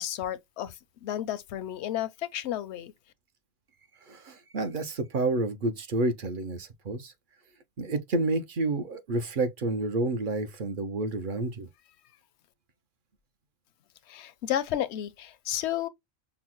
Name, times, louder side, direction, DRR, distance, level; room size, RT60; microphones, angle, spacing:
voice 1, 0.0-2.9 14.1-15.9, left 11 dB, 85° left, 0.8 m, -32 dB
voice 2, 4.1-7.1 7.8-11.7, right 2 dB, 55° right, 0.8 m, -29 dB
5.7 x 2.1 x 2.9 m
omnidirectional pair, 1.1 m